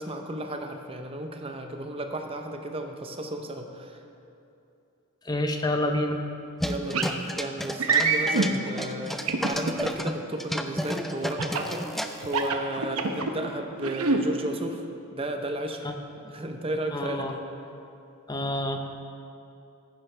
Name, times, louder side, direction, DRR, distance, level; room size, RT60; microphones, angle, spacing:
voice 1, 0.0-4.0 6.6-14.8 15.1-15.8 16.3-17.4, right 1 dB, 25° right, 5 dB, 0.7 m, -34 dB
voice 2, 5.3-6.2 15.8-15.9 16.9-17.4 18.3-19.0, left 1 dB, 20° left, 4 dB, 0.7 m, -28 dB
sound 1, 6.6-10.1 10.4-12.5, equal, ahead, 0.3 m, -32 dB
sound 2, 6.9-7.1 7.8-8.5 9.3-9.9 11.4-11.7 12.2-13.3 13.8-14.2, right 4 dB, 80° right, 0.8 m, -25 dB
14.0 x 10.5 x 3.3 m, 2.7 s
head